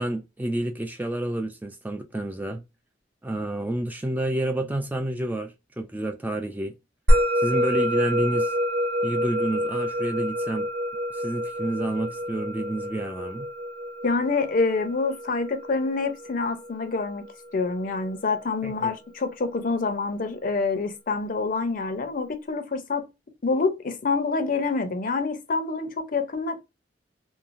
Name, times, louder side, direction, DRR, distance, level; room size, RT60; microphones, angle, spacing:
voice 1, 0.0-2.6 3.2-6.7 7.4-8.5 9.0-10.7 11.1-13.5 18.6-18.9, right 1 dB, 10° right, 0.3 m, -29 dB
Musical instrument, 7.1-17.7, equal, 65° right, 1.0 m, -27 dB
voice 2, 14.0-17.3 17.5-23.1 23.4-26.6, left 4 dB, 50° left, 0.5 m, -26 dB
3.1 x 2.2 x 2.5 m
head